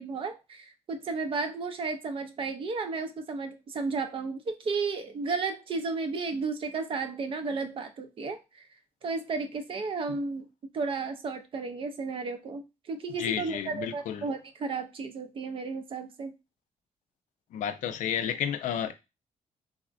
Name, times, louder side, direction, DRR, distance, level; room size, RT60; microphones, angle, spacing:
voice 1, 0.0-8.6 9.0-10.5 10.7-16.3, right 4 dB, 45° right, 0.5 m, -33 dB
voice 2, 13.2-14.2 17.5-18.9, left 9 dB, 85° left, 0.4 m, -31 dB
3.4 x 2.1 x 2.4 m
cardioid pair, 145°, 13 cm